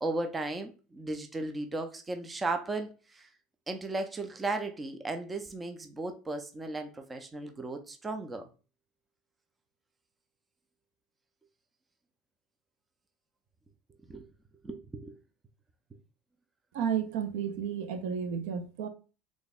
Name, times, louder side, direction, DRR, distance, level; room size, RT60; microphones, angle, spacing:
voice 1, 0.0-3.3 3.7-8.5 14.1-14.3 14.6-15.1, right 2 dB, 15° right, 0.4 m, -35 dB
voice 2, 16.7-18.9, right 8 dB, 70° right, 0.5 m, -32 dB
3.5 x 2.2 x 4.0 m
cardioid pair, 160°, 0 cm